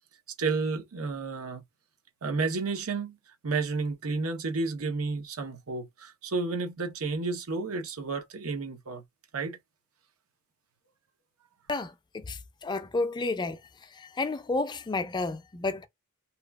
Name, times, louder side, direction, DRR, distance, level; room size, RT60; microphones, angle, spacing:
voice 1, 0.4-1.6 2.2-3.2 3.4-9.0 9.3-9.6, right 4 dB, 80° right, 0.8 m, -31 dB
voice 2, 11.7-13.6 14.0-15.9, left 3 dB, 20° left, 0.4 m, -31 dB
2.9 x 2.3 x 2.2 m
head